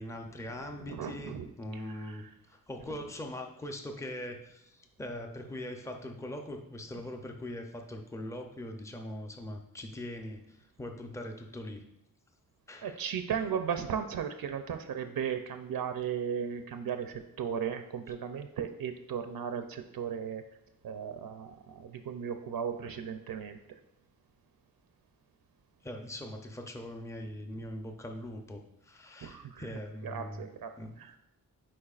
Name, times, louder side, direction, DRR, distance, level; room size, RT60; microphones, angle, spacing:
voice 1, 0.0-11.8 12.7-13.1 25.8-30.4 30.8-31.0, left 1 dB, 10° left, 3 dB, 0.5 m, -41 dB
voice 2, 0.8-1.5 1.7-2.3 12.8-20.4 20.8-23.6 29.2-29.7 30.0-30.7 31.0-31.2, right 7 dB, 80° right, 7 dB, 0.5 m, -36 dB
8.6 x 4.6 x 2.4 m, 0.90 s
wide cardioid pair, 155°, 35 cm